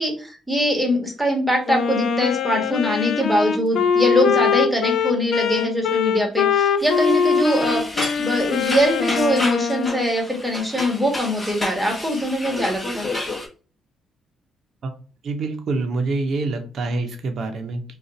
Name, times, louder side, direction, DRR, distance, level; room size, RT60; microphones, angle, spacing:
voice 1, 0.0-7.8 8.2-13.1, equal, 5° right, 1 dB, 1.3 m, -22 dB
Wind instrument woodwind instrument, 1.7-10.2, left 6 dB, 70° left, 0.4 m, -22 dB
sound 1, 6.8-13.5, left 2 dB, 20° left, 1.0 m, -31 dB
voice 2, 15.2-18.0, right 3 dB, 60° right, 5 dB, 0.7 m, -26 dB
2.5 x 2.4 x 3.9 m, 0.36 s
cardioid pair, 90°, 0 cm